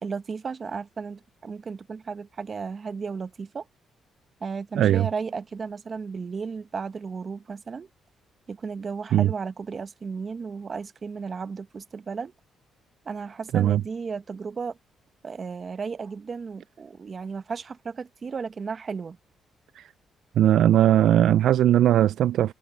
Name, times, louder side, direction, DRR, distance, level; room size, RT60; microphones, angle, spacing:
voice 1, 0.0-3.7 4.4-7.9 8.5-12.3 13.0-14.8 15.2-19.2, right 5 dB, 40° right, 1.1 m, -34 dB
voice 2, 4.8-5.1 9.1-9.3 13.5-13.8 19.8-19.9 20.4-22.5, right 11 dB, 75° right, 0.4 m, -19 dB
cardioid pair, 95°, 0 cm